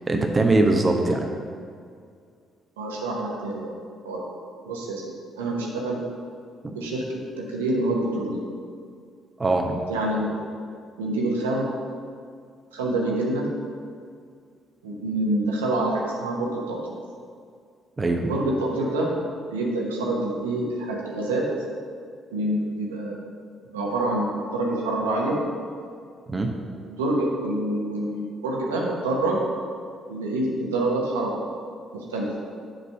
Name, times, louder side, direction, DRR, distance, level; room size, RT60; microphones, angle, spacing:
voice 1, 0.1-1.3 6.6-6.8 9.4-9.8 18.0-18.3 26.3-26.5, right 2 dB, 25° right, 3 dB, 0.8 m, -21 dB
voice 2, 2.8-3.7 4.0-4.2 4.6-5.1 5.4-6.0 6.7-7.0 7.4-8.4 9.9-10.3 11.0-11.7 12.7-13.4 14.8-16.9 18.3-19.1 19.5-21.4 22.3-23.1 23.7-25.4 26.9-29.4 30.1-31.4 31.9-32.3, right 2 dB, 80° right, -3 dB, 1.1 m, -26 dB
7.4 x 4.1 x 6.8 m, 2.2 s
figure-of-eight pair, 45°, 0 cm